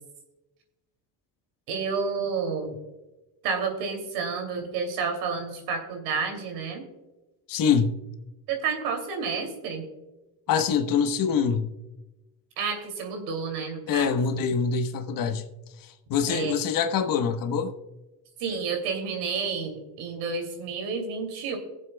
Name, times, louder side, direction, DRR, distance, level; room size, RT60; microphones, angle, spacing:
voice 1, 1.7-2.8 3.4-6.8 8.5-9.9 12.6-14.1 16.3-16.5 18.4-21.6, right 5 dB, 90° right, 2.7 m, -30 dB
voice 2, 7.5-7.9 10.5-11.7 13.9-15.4 15.8-17.7, left 6 dB, 60° left, 1.1 m, -25 dB
22.5 x 7.5 x 2.2 m
cardioid pair, 115°, 39 cm